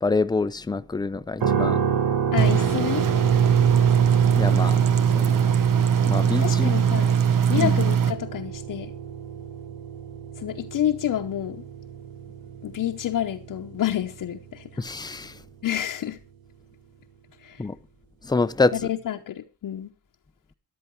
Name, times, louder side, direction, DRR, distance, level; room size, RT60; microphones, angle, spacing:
voice 1, 0.0-1.8 4.3-4.8 5.1-5.5 6.1-6.7 7.6-7.8 14.8-15.4 17.6-17.8 18.2-18.7, left 3 dB, 10° left, 0.5 m, -26 dB
sound 1, 1.4-15.4, right 7 dB, 85° right, 1.6 m, -30 dB
voice 2, 2.3-3.1 6.4-7.2 7.5-8.9 10.4-11.7 12.6-14.8 15.6-16.2 17.4-17.7 18.7-19.9, left 11 dB, 70° left, 1.0 m, -28 dB
sound 2, 2.4-8.1, right 8 dB, 70° right, 1.2 m, -20 dB
13.5 x 11.0 x 4.5 m
wide cardioid pair, 140°, 34 cm